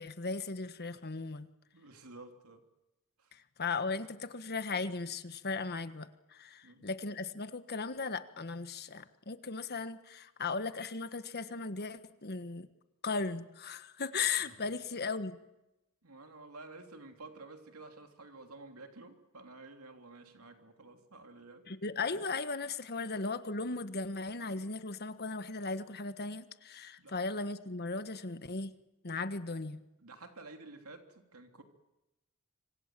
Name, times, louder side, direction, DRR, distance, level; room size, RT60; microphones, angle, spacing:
voice 1, 0.0-1.5 3.3-12.7 13.0-15.3 21.7-28.7 29.0-29.8, left 4 dB, 45° left, 11 dB, 1.5 m, -37 dB
voice 2, 1.7-2.6 3.2-3.3 6.6-6.9 14.5-14.6 16.0-21.6 27.0-27.1 30.0-31.6, right 3 dB, 80° right, 5 dB, 3.2 m, -51 dB
26.0 x 25.5 x 7.6 m, 0.95 s
head